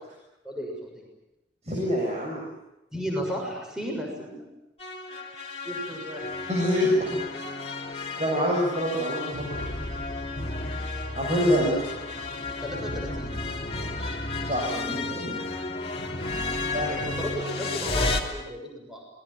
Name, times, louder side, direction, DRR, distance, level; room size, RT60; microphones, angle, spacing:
voice 1, 0.4-1.0 2.9-4.5 5.6-6.3 12.6-13.3 16.9-19.0, equal, 5° right, 0 dB, 6.5 m, -34 dB
voice 2, 1.6-2.4 6.5-6.9 8.2-9.7 11.1-11.7 14.4-15.4 16.7-17.0, equal, 35° right, -2 dB, 7.8 m, -26 dB
sound 1, 4.8-18.2, left 2 dB, 30° left, 2.9 m, -32 dB
26.5 x 20.5 x 9.3 m, 0.93 s
head